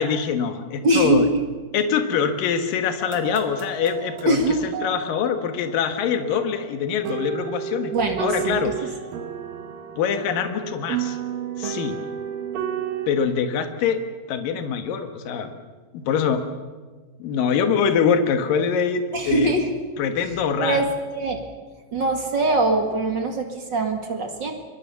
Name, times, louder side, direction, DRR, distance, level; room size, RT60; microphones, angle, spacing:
voice 1, 0.0-1.2 1.7-4.4 4.8-7.9 8.2-8.7 10.0-11.2 11.6-12.0 13.1-14.0 14.3-15.5 15.9-16.4 17.2-19.5 20.0-20.8, left 7 dB, 75° left, 7 dB, 3.2 m, -24 dB
voice 2, 0.8-1.4 4.3-4.7 7.9-8.7 19.1-19.7 20.6-21.4 21.9-24.5, right 2 dB, 35° right, 4 dB, 2.2 m, -22 dB
sound 1, 3.0-13.1, right 9 dB, 80° right, 3.3 m, -32 dB
24.5 x 23.0 x 7.0 m, 1.4 s
omnidirectional pair, 4.0 m